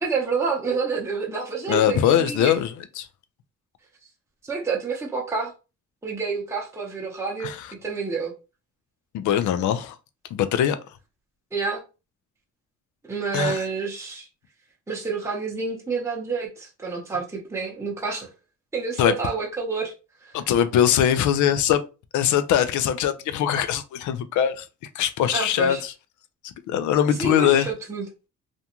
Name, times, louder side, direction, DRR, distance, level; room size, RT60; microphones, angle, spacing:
voice 1, 0.0-2.5 4.4-5.5 6.0-7.5 7.8-8.3 11.5-11.8 13.1-14.3 14.9-18.3 18.7-19.9 25.3-25.8 27.2-28.0, right 5 dB, 10° right, 0.7 m, -28 dB
voice 2, 1.7-3.1 7.4-7.7 9.1-10.0 10.3-10.8 13.3-13.7 19.0-19.1 20.3-21.8 22.1-24.7 24.9-25.9 26.4-27.7, left 10 dB, 75° left, 0.5 m, -22 dB
2.5 x 2.2 x 2.8 m
cardioid pair, 90°, 30 cm